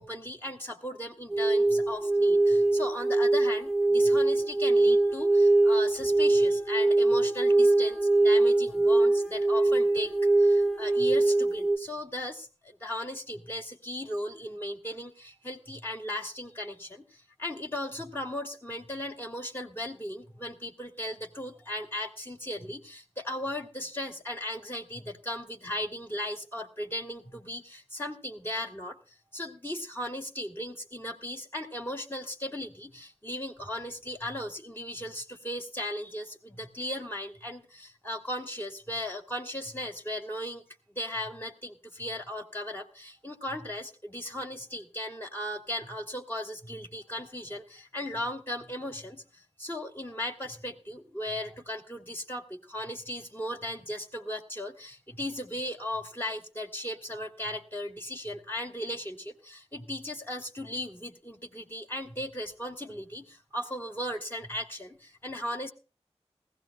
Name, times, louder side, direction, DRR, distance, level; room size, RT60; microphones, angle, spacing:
voice 1, 0.0-29.0 29.3-40.6 40.9-65.7, left 1 dB, 20° left, 0 dB, 2.9 m, -37 dB
sound 1, 1.3-11.8, right 2 dB, ahead, 1.0 m, -23 dB
19.5 x 16.5 x 2.3 m, 0.33 s
cardioid pair, 45°, 11 cm